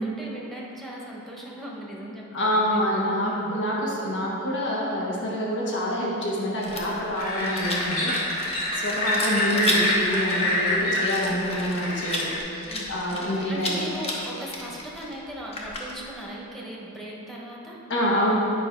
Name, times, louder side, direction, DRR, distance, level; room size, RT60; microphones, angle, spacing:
voice 1, 0.0-2.8 3.2-3.6 10.8-11.1 12.7-12.9 13.5-17.8, equal, ahead, -4 dB, 1.1 m, -38 dB
voice 2, 2.3-8.4 8.7-13.8 17.9-18.3, equal, 55° left, -4 dB, 1.3 m, -27 dB
Rattle, 6.6-16.2, left 2 dB, 30° left, 1.0 m, -34 dB
sound 1, 7.2-12.4, left 1 dB, 75° left, 1.9 m, -26 dB
9.1 x 5.1 x 4.6 m, 2.8 s
head